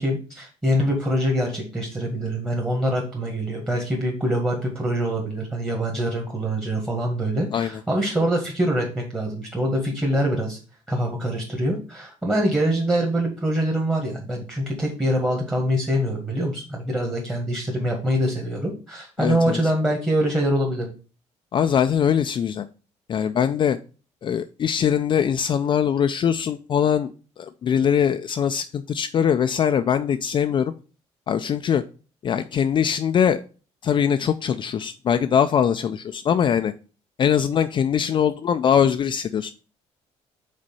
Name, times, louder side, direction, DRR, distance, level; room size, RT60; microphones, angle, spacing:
voice 1, 0.0-10.6 10.9-20.9, equal, 15° right, -1 dB, 1.8 m, -24 dB
voice 2, 19.2-19.6 21.5-22.7 23.1-23.8 24.2-27.1 27.4-30.7 31.3-31.8 32.2-33.4 33.8-36.7 37.2-39.5, left 8 dB, 40° left, 8 dB, 0.4 m, -22 dB
5.2 x 4.1 x 5.5 m, 0.36 s
cardioid pair, 105°, 12 cm